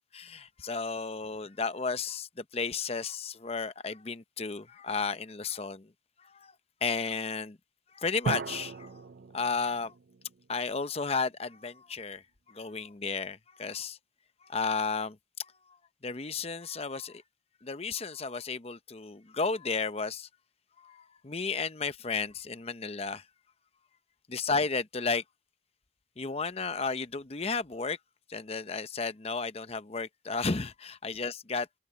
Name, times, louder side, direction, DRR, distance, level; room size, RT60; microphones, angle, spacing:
voice 1, 0.1-5.9 6.2-6.5 6.8-7.6 7.9-9.0 9.3-9.9 10.5-14.0 14.4-15.2 16.0-17.2 17.6-20.3 20.8-23.2 24.3-25.2 26.2-28.0 28.3-31.7, left 4 dB, 35° left, 0.7 m, -33 dB
sound 1, 8.2-11.0, right 4 dB, 55° right, 0.4 m, -38 dB
open air
head